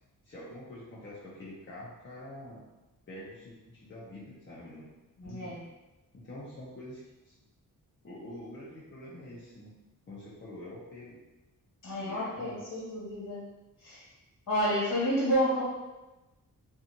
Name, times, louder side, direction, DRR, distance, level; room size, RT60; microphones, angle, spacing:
voice 1, 0.2-2.6 3.1-4.9 5.2-5.6 6.2-7.3 8.0-9.7 10.1-11.2 12.0-12.6, left 1 dB, 35° left, -7 dB, 0.6 m, -46 dB
voice 2, 5.2-5.6 11.8-13.4 13.8-14.1 14.5-15.6, equal, 65° left, -7 dB, 1.3 m, -30 dB
2.6 x 2.4 x 2.8 m, 1.0 s
wide cardioid pair, 150°, 34 cm